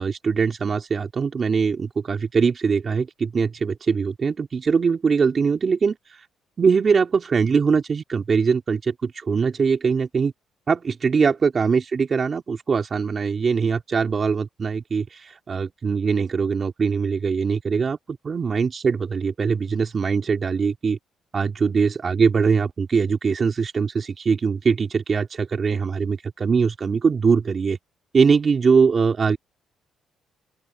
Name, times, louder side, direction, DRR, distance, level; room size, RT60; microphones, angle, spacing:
voice 1, 0.0-6.0 6.6-10.3 10.7-21.0 21.3-27.8 28.1-29.4, right 5 dB, 40° right, 3.5 m, -22 dB
open air
cardioid pair, 90°, 0 cm